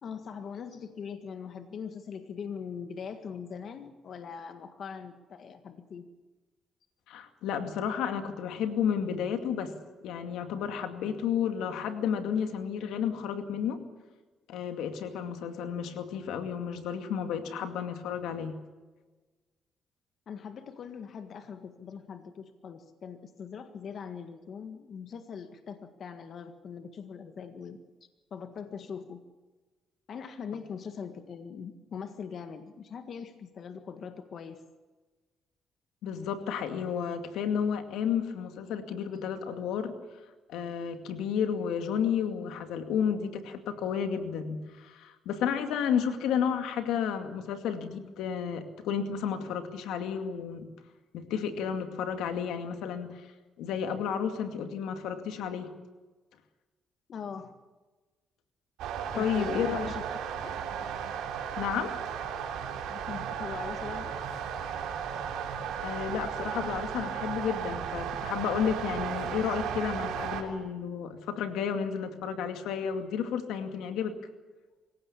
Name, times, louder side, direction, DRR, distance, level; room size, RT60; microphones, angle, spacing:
voice 1, 0.0-6.0 20.3-27.8 28.3-29.2 30.1-34.6 57.1-57.5 59.1-60.9 62.9-64.2, left 6 dB, 60° left, 8 dB, 1.7 m, -41 dB
voice 2, 7.1-9.7 10.0-13.8 14.5-18.5 36.0-39.9 40.5-50.7 51.1-53.3 53.6-55.7 59.1-59.9 61.6-61.9 65.8-74.1, left 7 dB, 90° left, 7 dB, 2.3 m, -32 dB
sound 1, 58.8-70.4, right 8 dB, 90° right, 3.2 m, -35 dB
25.0 x 16.5 x 8.6 m, 1.2 s
cardioid pair, 90°, 0 cm